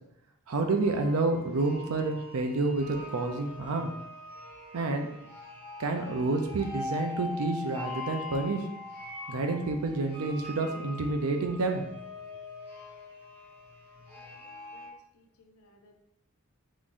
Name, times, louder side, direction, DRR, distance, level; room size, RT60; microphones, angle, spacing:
voice 1, 0.5-3.9 4.7-5.1 5.8-8.6 9.3-11.8, right 3 dB, 90° right, 4 dB, 0.5 m, -29 dB
sound 1, 0.8-14.9, left 2 dB, 10° left, 1.2 m, -42 dB
voice 2, 14.0-16.0, left 1 dB, 80° left, 3 dB, 0.5 m, -61 dB
3.8 x 3.0 x 2.5 m, 0.80 s
head